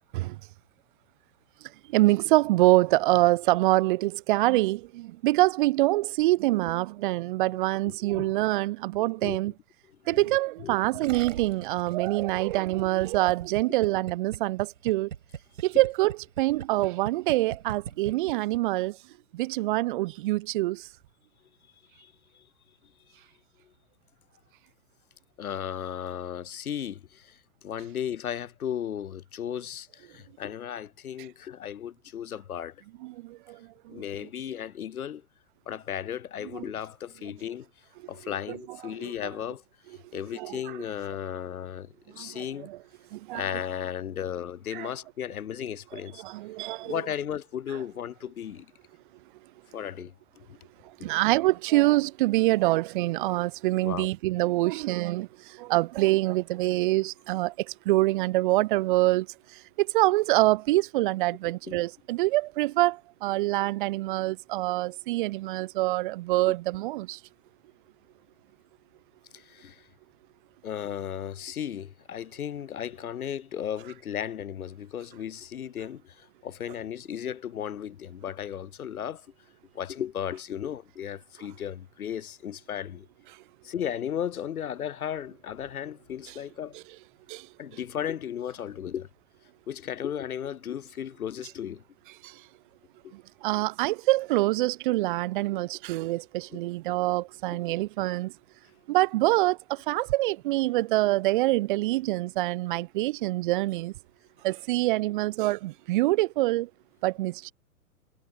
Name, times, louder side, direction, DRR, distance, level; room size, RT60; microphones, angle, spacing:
voice 1, 1.9-9.5 10.1-15.1 15.6-19.0 19.3-20.9 33.0-34.0 36.5-36.7 38.5-38.6 38.8-39.3 40.3-40.8 42.1-42.8 43.1-43.6 44.7-44.9 46.2-47.0 51.0-67.2 86.3-86.4 86.7-86.8 87.3-87.5 92.2-92.4 93.1-98.3 98.9-103.9 104.4-106.7 107.0-107.5, right 18 dB, 35° right, 1.0 m, -25 dB
Gurgling, 11.0-18.6 18.8-18.9, right 8 dB, 60° right, 5.3 m, -40 dB
voice 2, 25.4-27.4 27.6-32.8 33.9-35.2 35.7-37.7 38.1-39.6 40.1-42.7 43.3-46.2 46.8-48.7 49.7-50.1 53.8-54.1 61.7-61.8 69.3-69.8 70.6-79.2 79.7-83.1 83.6-86.8 87.6-89.1 89.7-91.8 93.0-93.1 96.5-96.6, left 9 dB, 80° left, 0.6 m, -35 dB
figure-of-eight pair, 110°, 43 cm